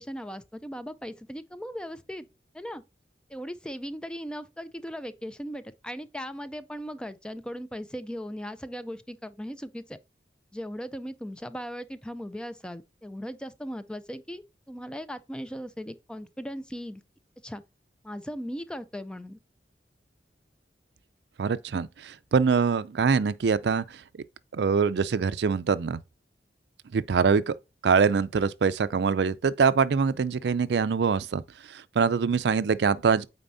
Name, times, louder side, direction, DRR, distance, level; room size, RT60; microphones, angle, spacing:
voice 1, 0.0-2.3 2.5-2.8 3.3-10.0 10.5-17.0 17.4-17.6 18.0-19.4, equal, 5° left, 0.4 m, -38 dB
voice 2, 21.4-24.0 24.5-26.0 26.9-27.6 27.8-31.4 31.7-33.3, right 5 dB, 75° right, 0.4 m, -24 dB
8.8 x 4.2 x 2.6 m
head